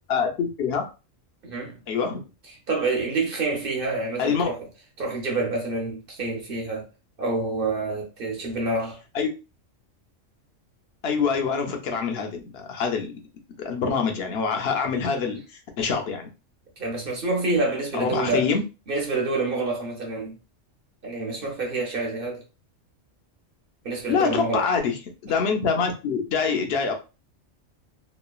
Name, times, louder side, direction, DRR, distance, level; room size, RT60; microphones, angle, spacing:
voice 1, 0.1-0.9 1.9-2.2 4.2-4.5 9.1-9.3 11.0-13.1 13.6-15.4 15.8-16.3 17.9-18.6 24.1-25.0 25.2-26.9, left 5 dB, 60° left, 0.8 m, -25 dB
voice 2, 1.4-1.8 2.7-4.6 5.0-6.9 7.2-9.0 16.8-18.5 18.9-20.4 21.0-22.4 23.8-24.7, right 3 dB, 50° right, 0.9 m, -27 dB
3.0 x 2.2 x 2.3 m
omnidirectional pair, 1.3 m